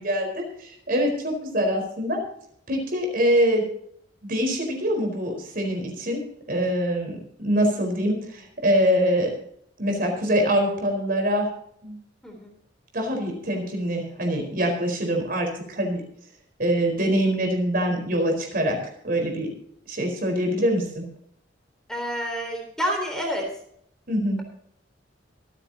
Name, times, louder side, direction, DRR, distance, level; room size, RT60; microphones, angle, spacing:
voice 1, 0.0-2.2 2.7-3.7 4.2-9.3 9.8-11.5 11.8-12.0 12.9-16.0 16.6-19.5 19.9-21.0 24.1-24.4, equal, 50° right, 3 dB, 4.5 m, -24 dB
voice 2, 12.2-12.5 21.9-23.5, equal, 5° left, 1 dB, 3.7 m, -28 dB
25.5 x 9.1 x 2.9 m, 0.67 s
head